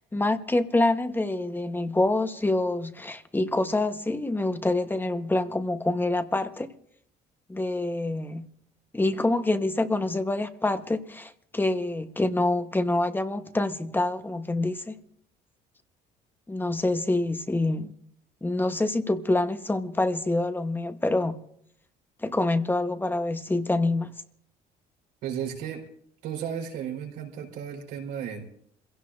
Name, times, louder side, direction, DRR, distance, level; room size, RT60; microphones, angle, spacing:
voice 1, 0.0-6.7 7.5-8.4 8.9-15.0 16.5-17.9 18.4-21.4 22.2-24.1, left 2 dB, 10° left, 1.0 m, -26 dB
voice 2, 25.2-25.8 26.2-28.4, right 8 dB, 90° right, 4.2 m, -34 dB
27.5 x 16.5 x 2.5 m
cardioid pair, 110°, 17 cm